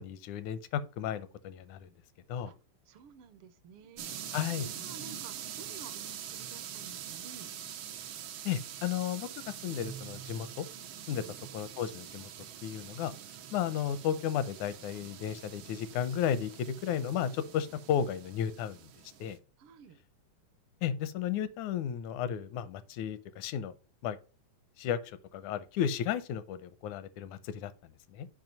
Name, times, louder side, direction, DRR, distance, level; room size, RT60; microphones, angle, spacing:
voice 1, 0.0-1.9 2.3-2.5 4.3-4.7 8.5-10.7 11.1-11.2 11.5-12.3 12.6-13.1 13.5-18.9 19.2-19.4 20.8-23.7 24.0-24.2 24.8-27.7 28.1-28.3, left 9 dB, 80° left, 2.1 m, -33 dB
voice 2, 2.9-7.5 11.1-11.4 19.6-20.0, right 6 dB, 75° right, 1.3 m, -52 dB
sound 1, 4.0-19.4, right 9 dB, 90° right, 1.1 m, -44 dB
7.8 x 5.0 x 5.2 m
omnidirectional pair, 3.5 m